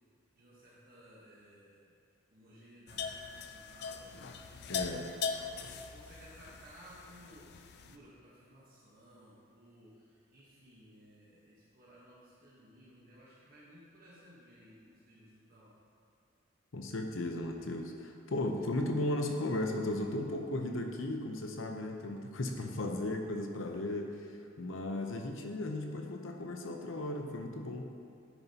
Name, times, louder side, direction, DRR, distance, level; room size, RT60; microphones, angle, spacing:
voice 1, 0.3-1.9 2.3-15.8 23.5-24.0, equal, 50° right, -7 dB, 1.2 m, -58 dB
sound 1, 2.9-8.0, left 5 dB, 60° left, 0.4 m, -41 dB
voice 2, 4.7-5.1 16.7-24.2 24.6-27.9, left 1 dB, 85° left, 3 dB, 0.8 m, -36 dB
10.5 x 6.8 x 2.9 m, 2.5 s
head